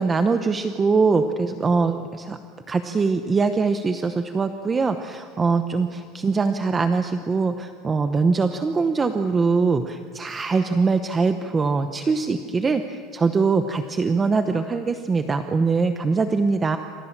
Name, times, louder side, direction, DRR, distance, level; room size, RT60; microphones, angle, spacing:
voice 1, 0.0-2.4 2.7-16.8, right 4 dB, 15° right, 8 dB, 0.8 m, -22 dB
28.5 x 26.0 x 7.3 m, 2.2 s
cardioid pair, 175°, 0 cm